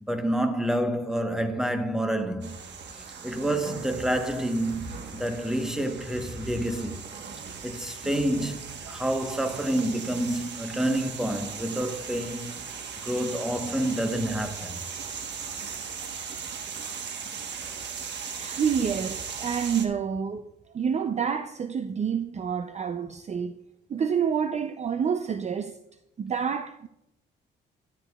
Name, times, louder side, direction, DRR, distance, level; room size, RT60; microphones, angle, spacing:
voice 1, 0.0-2.5 2.9-7.0 7.6-12.6 13.0-14.8, right 1 dB, 5° right, 1.1 m, -28 dB
sound 1, 2.4-19.9, right 6 dB, 60° right, 1.3 m, -38 dB
voice 2, 18.4-23.6 23.9-25.8 26.2-26.9, right 7 dB, 35° right, 0.5 m, -28 dB
11.5 x 10.5 x 2.3 m
cardioid pair, 90°, 20 cm